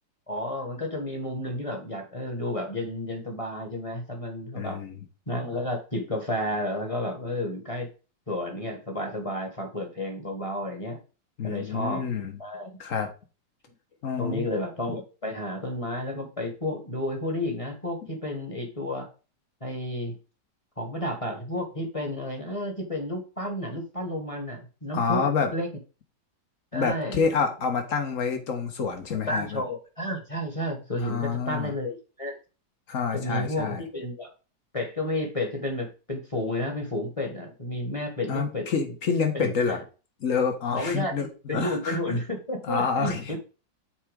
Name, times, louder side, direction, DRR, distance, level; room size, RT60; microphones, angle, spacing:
voice 1, 0.3-4.8 5.3-7.9 8.3-11.0 11.4-12.7 14.2-19.1 19.6-20.2 20.8-25.7 26.7-27.3 29.3-32.4 33.1-34.3 34.7-38.7 39.3-39.8 40.7-43.4, left 1 dB, 20° left, 3 dB, 1.5 m, -31 dB
voice 2, 4.6-5.0 11.4-12.3 12.8-13.1 14.0-14.5 24.9-25.5 26.7-29.6 31.0-31.7 32.9-33.8 38.3-39.8 40.2-42.2 42.6-43.4, left 5 dB, 50° left, 5 dB, 1.7 m, -28 dB
7.4 x 4.3 x 5.1 m, 0.33 s
omnidirectional pair, 1.9 m